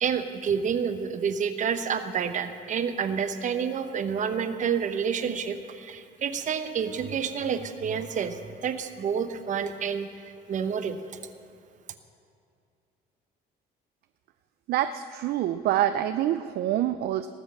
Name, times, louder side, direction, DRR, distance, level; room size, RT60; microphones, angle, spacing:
voice 1, 0.0-10.1 10.5-11.0, right 7 dB, 50° right, 9 dB, 0.9 m, -29 dB
voice 2, 14.7-17.3, right 12 dB, 70° right, 10 dB, 0.5 m, -26 dB
18.5 x 6.4 x 7.3 m, 2.5 s
cardioid pair, 110°, 17 cm